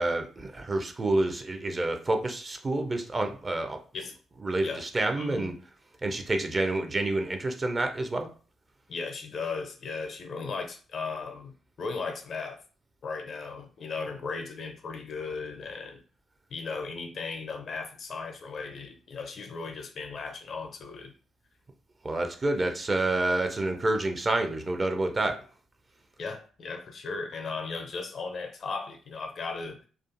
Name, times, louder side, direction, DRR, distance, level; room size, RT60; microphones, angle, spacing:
voice 1, 0.0-3.8 4.4-5.5 6.0-8.3 22.0-25.4, right 2 dB, 30° right, 6 dB, 0.4 m, -28 dB
voice 2, 5.2-5.6 8.9-12.6 13.0-16.0 16.5-21.1 26.2-29.9, left 4 dB, 55° left, 5 dB, 0.5 m, -36 dB
2.4 x 2.3 x 2.5 m, 0.39 s
figure-of-eight pair, 40°, 0 cm